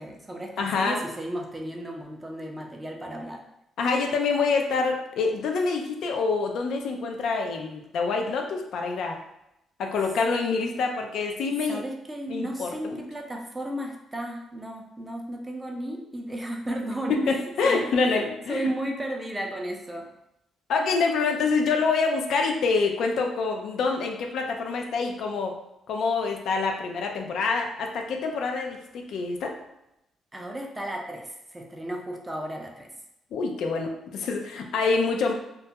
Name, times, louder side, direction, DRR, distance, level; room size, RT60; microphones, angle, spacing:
voice 1, 0.0-3.4 11.6-20.1 30.3-32.9, right 1 dB, 15° right, 1 dB, 0.5 m, -34 dB
voice 2, 0.6-1.0 3.8-9.1 9.8-11.8 12.3-13.0 17.3-18.7 20.7-25.5 25.9-29.5 33.3-35.3, left 4 dB, 75° left, 2 dB, 0.3 m, -26 dB
2.2 x 2.1 x 2.7 m, 0.85 s
cardioid pair, 90°, 0 cm